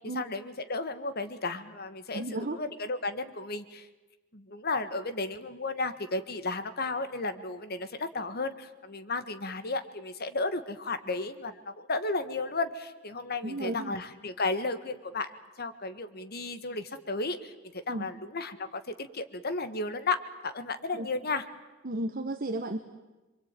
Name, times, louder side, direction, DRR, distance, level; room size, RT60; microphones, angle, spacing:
voice 1, 0.1-3.9 4.3-15.3 15.6-17.5 17.9-20.2 20.4-21.4, left 3 dB, 50° left, 10 dB, 1.6 m, -33 dB
voice 2, 2.1-2.6 13.4-13.9 17.9-18.1 20.9-21.1 21.8-22.8, right 2 dB, 45° right, 7 dB, 1.3 m, -33 dB
26.5 x 24.0 x 9.1 m, 1.1 s
head